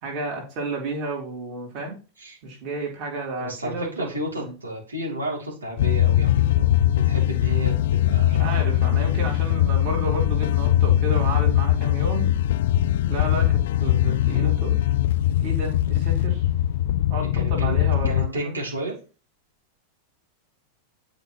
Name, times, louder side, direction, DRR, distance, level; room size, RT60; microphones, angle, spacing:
voice 1, 0.0-2.0 2.4-4.1 4.4-4.5 8.3-12.3 13.0-14.8 15.4-16.5 17.1-18.6, right 2 dB, 45° right, -1 dB, 3.3 m, -31 dB
voice 2, 3.4-8.6 17.2-17.8 18.0-18.9, right 1 dB, 80° right, -3 dB, 3.5 m, -32 dB
the end of death, 5.8-18.3, left 12 dB, 55° left, 0.3 m, -21 dB
11.5 x 5.3 x 3.2 m, 0.35 s
figure-of-eight pair, 90°, 0 cm